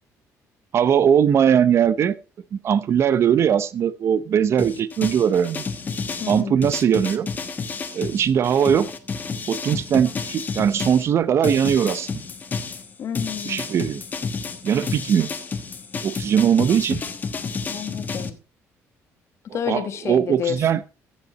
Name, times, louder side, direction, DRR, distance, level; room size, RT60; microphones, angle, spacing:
voice 1, 0.7-2.2 2.5-5.6 6.3-7.3 7.9-8.9 9.5-12.2 13.4-14.0 14.6-15.3 16.0-17.0 19.5-20.8, right 8 dB, 50° right, 0.8 m, -20 dB
sound 1, 4.6-11.1 11.4-18.3, left 5 dB, 30° left, 1.2 m, -30 dB
voice 2, 6.2-6.5 13.0-13.7 17.7-18.4 19.5-20.6, left 8 dB, 50° left, 1.4 m, -29 dB
15.0 x 7.1 x 4.1 m
cardioid pair, 120°, 6 cm